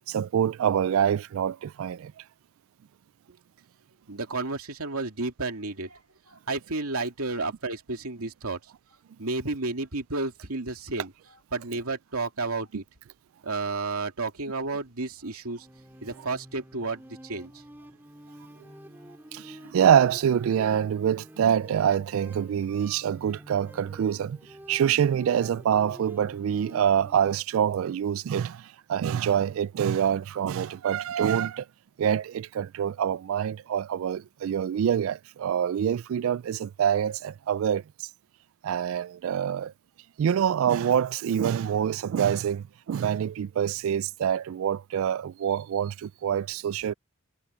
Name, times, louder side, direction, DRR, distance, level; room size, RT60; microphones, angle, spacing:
voice 1, 0.1-2.1 19.3-24.4 24.7-31.7 32.0-38.1 38.6-39.7 40.2-46.9, right 8 dB, 70° right, 0.3 m, -26 dB
voice 2, 4.1-6.0 6.3-8.6 9.2-11.1 11.5-12.8 13.4-15.7 16.0-17.5, right 3 dB, 85° right, 2.5 m, -32 dB
sound 1, 15.5-27.4, equal, 10° right, 4.3 m, -48 dB
head